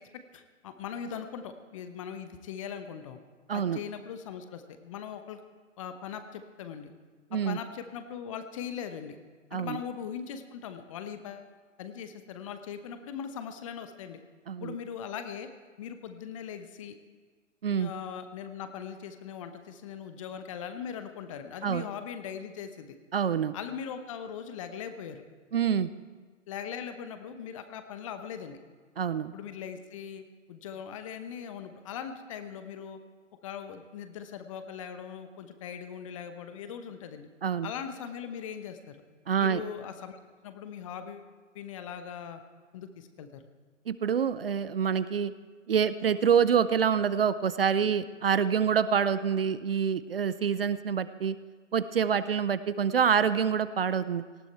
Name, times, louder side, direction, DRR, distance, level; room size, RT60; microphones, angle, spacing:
voice 1, 0.1-3.2 3.5-5.4 5.8-6.9 7.3-9.2 9.5-11.5 11.8-14.2 14.6-15.5 15.8-16.9 17.7-23.0 23.5-25.2 26.5-28.6 29.3-30.2 30.5-33.0 33.4-37.3 37.6-39.0 39.4-41.3 41.5-42.4 42.7-43.5, left 8 dB, 25° left, 9 dB, 0.9 m, -40 dB
voice 2, 3.5-3.8 7.3-7.6 9.5-9.8 14.5-14.8 17.6-17.9 21.6-21.8 23.1-23.5 25.5-25.9 29.0-29.3 37.4-37.7 39.3-39.6 43.9-45.3 45.7-51.4 51.7-54.2, right 7 dB, 50° right, 15 dB, 0.6 m, -26 dB
18.5 x 15.0 x 4.5 m, 1.5 s
figure-of-eight pair, 125°, 38 cm